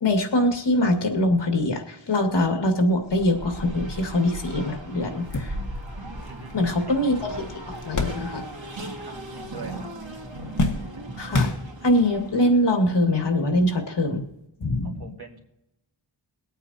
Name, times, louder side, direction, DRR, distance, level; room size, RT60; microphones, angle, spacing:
voice 1, 0.0-5.6 6.5-7.4 7.7-8.4 11.2-11.5 11.8-14.2 14.6-15.1, left 1 dB, 65° left, 3 dB, 2.3 m, -23 dB
Race car auto racing, 3.0-12.7, right 1 dB, 80° right, 2.5 m, -37 dB
sound 1, 4.5-4.6 5.0-8.8 9.0-9.8 10.1-12.1 12.9-13.0 14.3-14.4, left 2 dB, 40° left, 1.8 m, -30 dB
voice 2, 6.2-6.5 6.9-7.0 9.0-9.9 14.8-15.4, right 4 dB, 55° right, 1 dB, 2.5 m, -42 dB
23.0 x 8.9 x 2.9 m, 0.89 s
wide cardioid pair, 80°, 45 cm